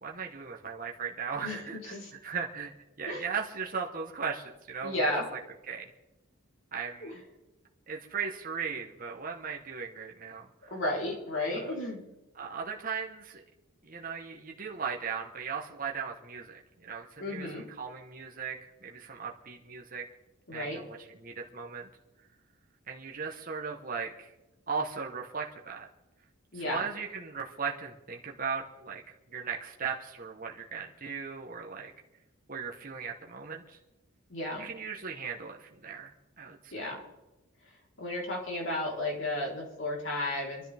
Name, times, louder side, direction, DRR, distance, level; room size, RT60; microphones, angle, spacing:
voice 1, 0.0-2.0 2.2-2.7 3.0-5.4 5.7-5.9 6.7-7.2 7.9-10.7 11.5-11.7 12.4-13.4 13.8-20.1 20.5-21.9 22.9-24.3 24.7-25.9 26.5-29.0 29.3-31.9 32.5-33.8 34.6-36.9, right 6 dB, 40° right, 0 dB, 1.1 m, -37 dB
voice 2, 1.4-2.1 3.1-3.2 4.8-5.3 7.0-7.1 10.7-12.1 17.2-17.6 20.5-20.8 26.5-26.8 34.3-34.6 36.7-37.0 38.0-40.6, left 1 dB, 60° left, -2 dB, 3.8 m, -33 dB
23.0 x 13.0 x 3.5 m, 1.0 s
head